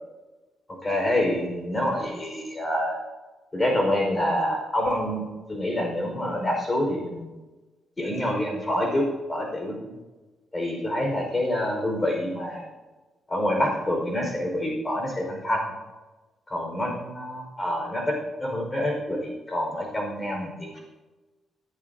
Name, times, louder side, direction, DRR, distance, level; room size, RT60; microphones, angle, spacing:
voice 1, 0.8-3.0 3.5-7.3 8.0-10.0 10.5-12.7 13.3-15.6 16.5-20.8, left 1 dB, 25° left, 0 dB, 5.1 m, -27 dB
20.5 x 11.5 x 2.8 m, 1.2 s
cardioid pair, 85°, 0 cm